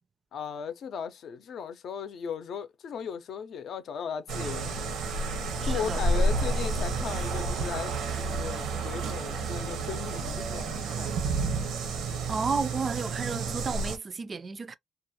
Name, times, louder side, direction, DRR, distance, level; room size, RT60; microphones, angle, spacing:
voice 1, 0.3-4.9 5.6-11.5, left 7 dB, 65° left, 0.6 m, -37 dB
sound 1, 4.3-14.0, right 3 dB, 85° right, 0.7 m, -30 dB
voice 2, 5.6-6.0 12.3-14.8, right 4 dB, 35° right, 0.3 m, -32 dB
2.4 x 2.3 x 2.8 m
cardioid pair, 90°, 0 cm